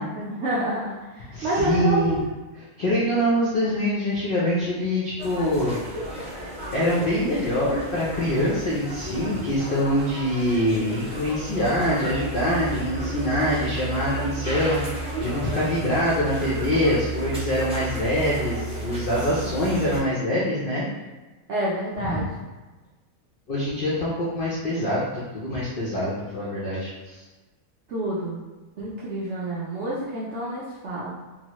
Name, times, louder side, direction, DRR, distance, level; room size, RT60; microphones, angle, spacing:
voice 1, 0.0-2.3 21.5-22.3 27.9-28.4 28.8-31.2, right 1 dB, 70° right, -7 dB, 0.6 m, -28 dB
voice 2, 1.3-2.2 2.8-5.8 6.7-20.8 22.1-22.2 23.5-27.2, equal, 80° left, -7 dB, 0.4 m, -24 dB
sound 1, 5.2-20.0, right 1 dB, 5° right, 0.5 m, -33 dB
2.9 x 2.0 x 2.9 m, 1.2 s
omnidirectional pair, 1.7 m